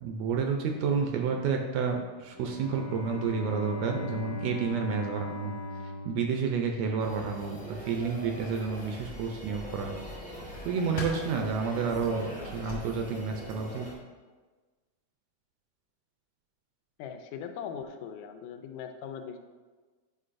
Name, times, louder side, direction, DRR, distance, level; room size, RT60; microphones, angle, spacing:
voice 1, 0.0-5.5 6.0-10.0 10.6-13.9, right 5 dB, 80° right, 3 dB, 1.6 m, -30 dB
Bowed string instrument, 2.3-7.3, left 2 dB, 65° left, 1.5 m, -38 dB
sound 1, 7.0-13.9, equal, 15° right, 0.5 m, -42 dB
sound 2, 8.3-13.6, left 1 dB, 40° left, 1.0 m, -46 dB
voice 2, 17.0-19.4, left 7 dB, 80° left, 6 dB, 1.9 m, -40 dB
8.3 x 5.1 x 2.5 m, 1.3 s
omnidirectional pair, 3.3 m